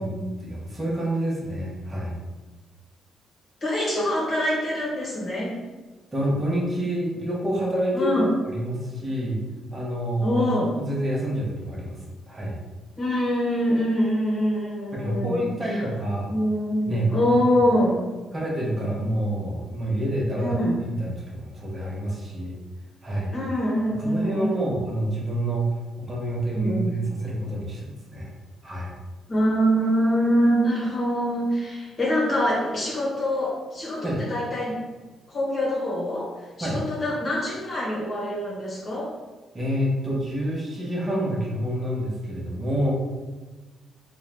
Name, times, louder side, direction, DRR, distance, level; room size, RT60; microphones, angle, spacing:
voice 1, 0.4-2.2 6.1-9.4 9.7-10.4 10.7-12.6 14.9-16.3 16.9-17.4 18.3-22.6 23.0-23.3 23.9-28.3 28.6-28.9 34.0-34.2 36.6-36.8 39.5-42.9, right 1 dB, 25° right, -4 dB, 1.1 m, -28 dB
voice 2, 3.6-5.6 7.9-8.3 10.2-10.7 13.0-15.8 16.3-18.0 20.4-20.8 23.3-24.6 26.5-26.9 29.3-34.8 35.3-39.1, equal, 40° left, -5 dB, 1.0 m, -24 dB
3.7 x 2.4 x 3.4 m, 1.2 s
cardioid pair, 90°, 0 cm